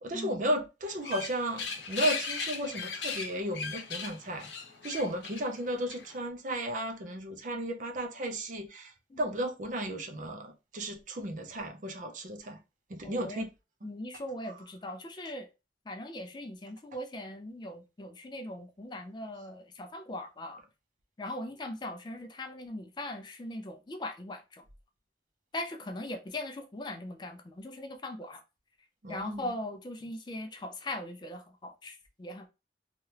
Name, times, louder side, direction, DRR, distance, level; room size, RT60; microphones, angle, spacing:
voice 1, 0.0-4.5 4.8-8.9 9.2-12.6 12.9-13.5 29.0-29.5, right 1 dB, 45° right, 0.5 m, -34 dB
sound 1, 0.9-6.2, left 5 dB, 85° left, 0.7 m, -37 dB
voice 2, 13.0-13.5 13.8-15.5 15.9-20.6 21.2-24.6 25.5-28.4 29.1-32.5, left 1 dB, 25° left, 0.3 m, -40 dB
2.9 x 2.3 x 3.2 m
head